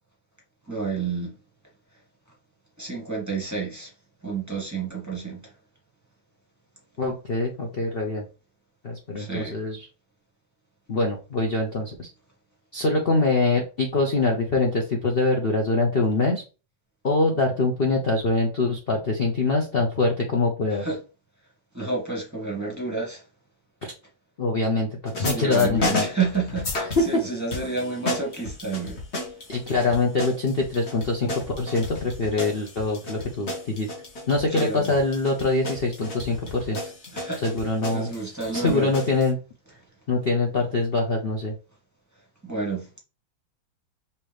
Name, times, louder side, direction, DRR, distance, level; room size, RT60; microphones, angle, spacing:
voice 1, 0.7-1.3 2.8-3.9 4.2-5.5 9.2-9.6 20.7-21.0 21.7-23.2 25.1-29.0 34.5-34.9 37.1-37.4 37.9-38.9 42.4-43.0, right 4 dB, 10° right, 0.8 m, -30 dB
voice 2, 7.0-8.2 8.8-9.9 10.9-12.1 12.7-16.4 17.0-20.8 23.8-23.9 24.4-26.1 27.0-27.1 29.5-33.9 34.3-36.9 37.4-38.1 38.5-39.4 40.1-41.5, left 3 dB, 65° left, 0.5 m, -24 dB
sound 1, 25.0-27.2 27.5-39.3, left 2 dB, 40° left, 1.4 m, -33 dB
5.5 x 2.9 x 3.3 m
omnidirectional pair, 2.1 m